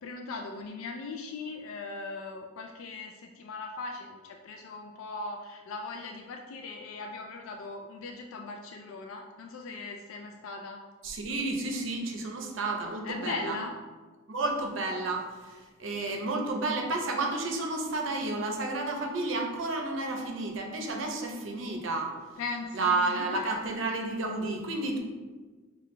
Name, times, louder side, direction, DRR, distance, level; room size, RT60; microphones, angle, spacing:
voice 1, 0.0-10.8 13.0-13.8 22.4-23.5, left 3 dB, 80° left, 3 dB, 0.3 m, -39 dB
voice 2, 11.0-13.6 14.3-22.1 22.7-25.0, right 2 dB, 65° right, 2 dB, 0.6 m, -31 dB
5.7 x 2.3 x 3.1 m, 1.4 s
head